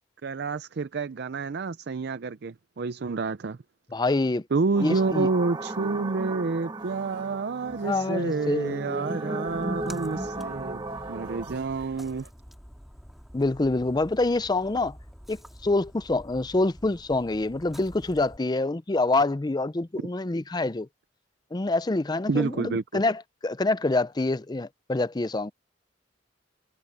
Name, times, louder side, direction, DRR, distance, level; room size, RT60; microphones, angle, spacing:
voice 1, 0.2-3.6 4.5-10.8 11.1-12.2 22.3-22.8, right 4 dB, 60° right, 0.5 m, -28 dB
voice 2, 3.9-4.4 4.8-5.3 7.8-9.0 13.3-15.0 15.3-20.9 21.5-25.5, left 2 dB, 20° left, 0.5 m, -26 dB
sound 1, 4.7-11.6, right 2 dB, 25° right, 1.2 m, -35 dB
sound 2, 6.8-12.3, right 3 dB, 85° right, 3.5 m, -54 dB
Splash splatter, 9.5-18.4, equal, ahead, 2.1 m, -48 dB
head